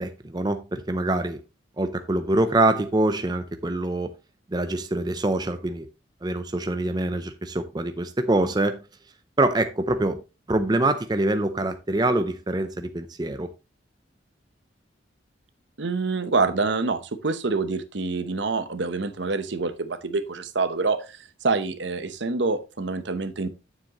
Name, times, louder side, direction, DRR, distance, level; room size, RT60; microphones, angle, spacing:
voice 1, 0.0-1.4 1.8-4.1 4.5-5.9 6.2-8.8 9.4-10.2 10.5-13.5, right 2 dB, 20° right, 0.5 m, -25 dB
voice 2, 15.8-21.0 21.4-23.5, right 3 dB, 65° right, 0.9 m, -26 dB
9.0 x 7.3 x 3.0 m
head